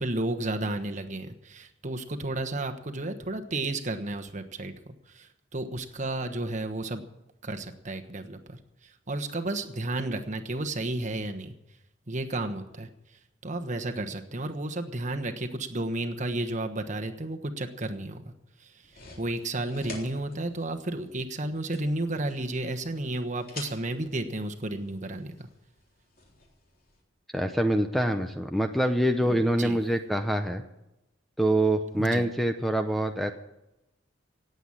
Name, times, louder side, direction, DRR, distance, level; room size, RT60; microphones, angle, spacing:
voice 1, 0.0-7.0 7.4-11.5 12.1-18.3 18.6-25.5 29.2-29.8 32.0-32.3, right 2 dB, 40° right, 6 dB, 1.3 m, -32 dB
sound 1, 18.8-27.0, left 3 dB, 50° left, 3.8 m, -49 dB
voice 2, 27.3-30.6 31.4-33.3, right 1 dB, ahead, 6 dB, 0.8 m, -25 dB
18.0 x 8.1 x 9.0 m, 0.90 s
head